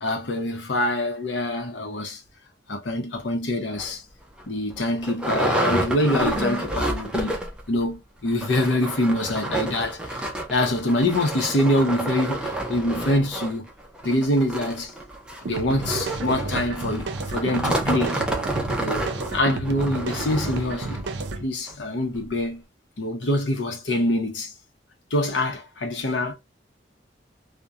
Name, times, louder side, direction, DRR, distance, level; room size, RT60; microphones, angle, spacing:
voice 1, 0.0-2.2 2.7-4.0 4.5-7.4 7.7-13.7 14.0-14.9 15.4-18.2 18.7-21.0 21.4-22.6 23.0-24.5 25.1-26.3, left 1 dB, 85° left, 0.7 m, -25 dB
sound 1, 3.8-3.9 4.4-4.5 4.7-7.7 7.9-8.0 8.3-21.1 21.7-21.8 22.1-22.2, right 1 dB, 5° right, 0.4 m, -29 dB
sound 2, 15.5-21.4, right 3 dB, 70° right, 0.4 m, -32 dB
2.4 x 2.1 x 2.6 m
head